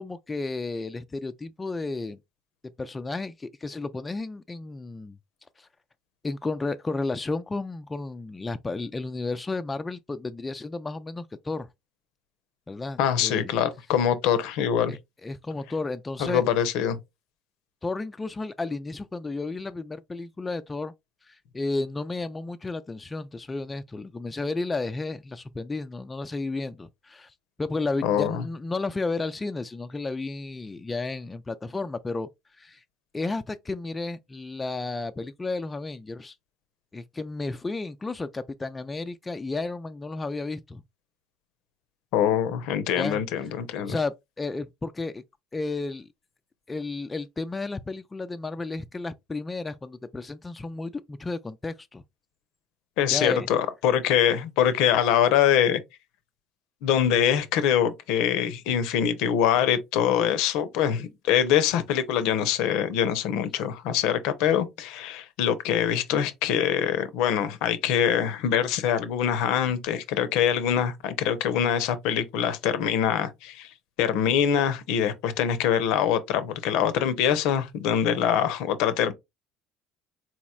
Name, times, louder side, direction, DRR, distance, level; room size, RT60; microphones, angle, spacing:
voice 1, 0.0-2.2 2.8-5.2 5.6-5.7 6.2-11.7 12.7-13.5 14.9-16.4 17.8-20.9 21.3-27.3 27.6-32.3 32.6-32.8 33.1-36.4 36.9-40.8 43.0-43.2 43.8-45.2 45.5-46.1 46.7-52.0 53.1-53.5, left 3 dB, 20° left, 0.3 m, -32 dB
voice 2, 13.0-15.0 16.2-17.0 28.0-28.5 42.1-44.0 53.0-55.8 56.8-73.7 74.0-79.1, left 9 dB, 70° left, 0.6 m, -24 dB
4.1 x 2.9 x 2.3 m
hypercardioid pair, 65°, 0 cm